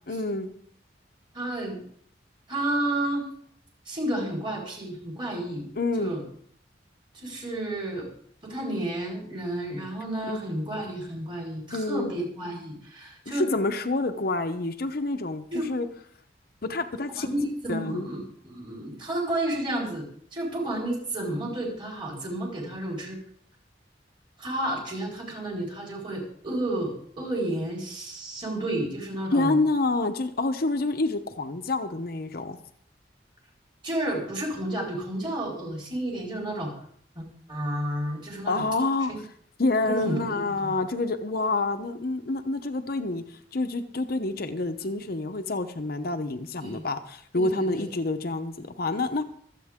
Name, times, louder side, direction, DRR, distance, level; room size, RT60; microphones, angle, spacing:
voice 1, 0.1-0.5 5.8-6.1 10.3-10.4 11.7-12.1 13.3-15.9 16.6-17.3 17.7-18.1 29.3-32.6 38.5-39.1 39.6-49.2, left 2 dB, 55° left, 7 dB, 0.9 m, -28 dB
voice 2, 1.3-1.8 2.5-3.3 3.9-5.7 6.0-6.2 7.1-8.1 8.4-13.5 15.5-15.7 17.1-20.1 20.3-23.2 24.4-29.6 33.8-36.7 37.1-38.6 39.8-40.7 46.6-46.9 47.3-47.8, right 1 dB, 25° right, -2 dB, 4.5 m, -31 dB
25.0 x 8.5 x 3.7 m, 0.62 s
head